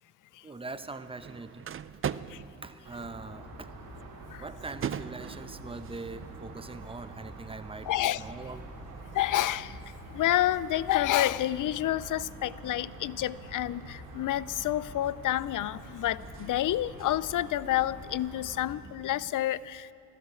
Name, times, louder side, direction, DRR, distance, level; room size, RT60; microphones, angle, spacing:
voice 1, 0.4-2.1 2.6-3.7 4.4-8.7, right 3 dB, 15° right, 0.8 m, -42 dB
sound 1, 0.7-19.3, right 9 dB, 35° right, 0.4 m, -45 dB
sound 2, 2.8-18.8, right 1 dB, 80° right, 2.4 m, -46 dB
voice 2, 7.9-8.2 9.1-9.8 10.1-19.9, left 13 dB, 60° left, 0.5 m, -29 dB
13.0 x 12.5 x 7.7 m
supercardioid pair, 60°, 36 cm